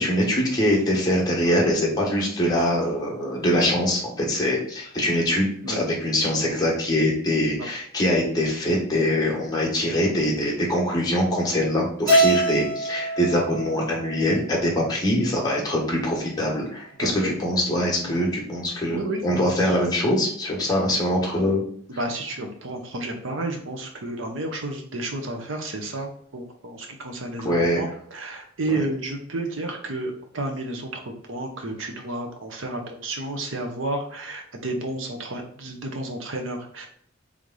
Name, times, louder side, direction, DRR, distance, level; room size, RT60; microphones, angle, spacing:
voice 1, 0.0-21.6 27.4-27.8 28.7-28.8, left 1 dB, 20° left, -3 dB, 1.2 m, -23 dB
Keyboard (musical), 12.1-14.4, right 1 dB, 45° right, 1.1 m, -24 dB
voice 2, 17.0-17.3 18.2-18.3 18.9-19.5 22.0-27.9 28.1-36.9, right 2 dB, 85° right, 3 dB, 0.9 m, -31 dB
3.4 x 3.2 x 3.8 m, 0.63 s
head